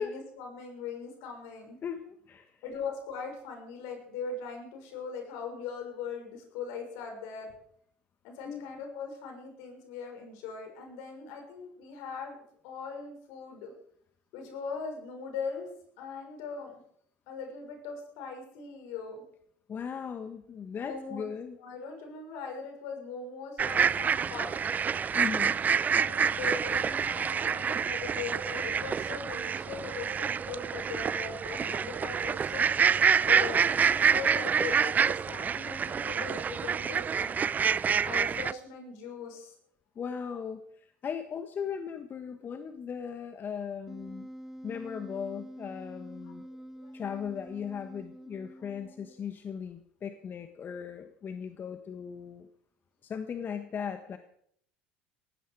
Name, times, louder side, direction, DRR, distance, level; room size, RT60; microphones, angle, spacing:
voice 1, 0.0-1.8 2.6-7.5 8.2-12.4 12.6-13.7 14.3-15.7 16.0-16.7 17.3-19.2 20.8-21.3 21.6-24.5 25.9-32.7 33.3-37.5 38.0-39.5 46.2-46.9, left 5 dB, 70° left, 3 dB, 6.2 m, -40 dB
voice 2, 1.8-2.6 8.4-8.7 19.7-21.6 25.1-25.6 39.9-44.3 44.6-46.4 46.9-52.5 53.0-54.2, left 7 dB, 40° left, 8 dB, 1.5 m, -38 dB
sound 1, 23.6-38.5, right 7 dB, 30° right, 0.5 m, -27 dB
Wind instrument woodwind instrument, 43.9-49.3, equal, 5° right, 1.8 m, -47 dB
18.5 x 15.5 x 4.9 m, 0.65 s
hypercardioid pair, 70°, 5 cm